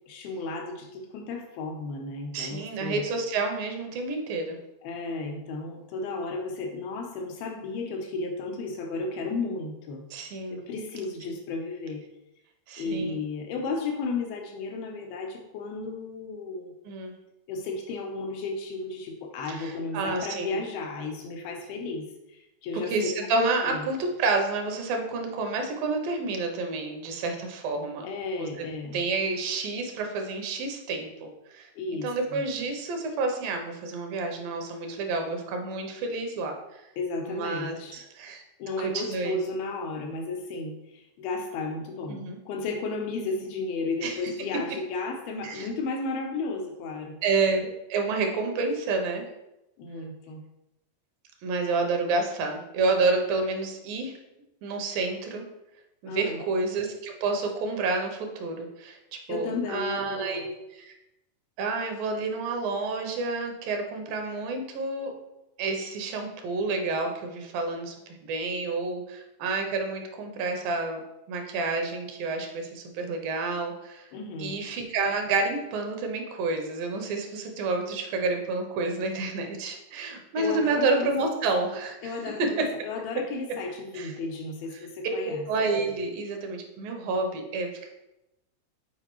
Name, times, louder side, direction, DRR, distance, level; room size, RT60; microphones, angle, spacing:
voice 1, 0.1-3.0 4.8-10.1 10.6-12.0 12.8-16.7 17.5-22.9 23.6-23.9 28.0-29.0 31.8-32.4 37.0-38.0 38.6-47.2 49.8-50.4 56.1-56.4 59.3-60.5 74.1-74.6 80.4-81.1 82.0-85.5, left 3 dB, 90° left, 2 dB, 2.8 m, -33 dB
voice 2, 2.3-4.6 10.1-10.6 12.7-13.2 16.8-17.1 19.5-20.6 22.9-28.1 28.4-28.7 28.9-36.6 37.2-38.4 38.8-39.4 42.1-42.4 44.0-44.2 45.4-45.7 47.2-49.3 51.4-54.1 54.6-55.4 56.0-60.9 61.6-65.1 65.6-71.0 71.3-74.1 74.4-82.7 83.9-84.1 85.0-85.2 85.5-87.9, right 3 dB, 75° right, 3 dB, 2.5 m, -29 dB
7.8 x 4.6 x 3.1 m, 0.91 s
omnidirectional pair, 4.2 m